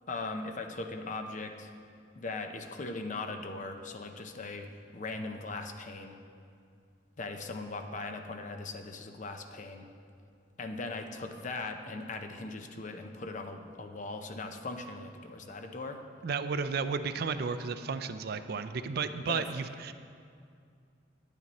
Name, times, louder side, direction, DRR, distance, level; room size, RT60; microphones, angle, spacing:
voice 1, 0.1-1.7 2.2-6.2 7.2-9.9 10.6-16.0 19.3-19.4, left 3 dB, 45° left, 6 dB, 0.6 m, -39 dB
voice 2, 16.2-19.9, right 5 dB, 60° right, 11 dB, 0.4 m, -33 dB
10.0 x 9.2 x 4.1 m, 2.3 s
head